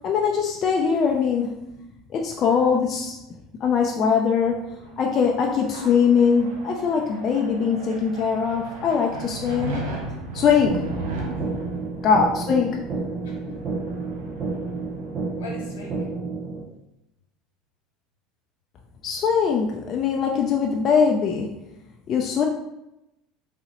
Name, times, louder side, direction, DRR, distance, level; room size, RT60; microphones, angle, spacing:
voice 1, 0.0-1.6 2.1-3.2 3.6-4.7 5.0-9.8 10.3-10.9 12.0-12.8 19.0-21.5 22.1-22.5, left 6 dB, 45° left, 0 dB, 0.4 m, -21 dB
sound 1, 4.5-15.8, right 2 dB, 85° right, 0.7 m, -37 dB
sound 2, 10.6-16.6, right 3 dB, 40° right, 0.6 m, -30 dB
voice 2, 11.3-11.7 13.2-13.6 15.4-16.1, left 3 dB, 90° left, -2 dB, 1.0 m, -41 dB
3.7 x 2.0 x 2.9 m, 0.89 s
supercardioid pair, 95°, 0 cm